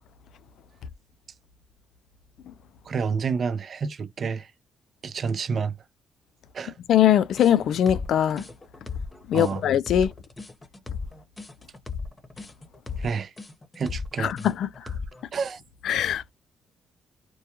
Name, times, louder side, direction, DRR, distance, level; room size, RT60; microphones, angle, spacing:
voice 1, 2.9-4.5 5.0-5.8 6.5-6.8 9.3-9.6 13.0-13.3 13.8-14.3 15.3-15.6, right 5 dB, 55° right, 0.5 m, -29 dB
voice 2, 6.9-8.5 9.3-10.1 14.2-14.7 15.9-16.3, left 10 dB, 75° left, 0.3 m, -21 dB
sound 1, 7.4-15.2, left 5 dB, 25° left, 0.9 m, -36 dB
2.2 x 2.2 x 2.8 m
supercardioid pair, 65°, 0 cm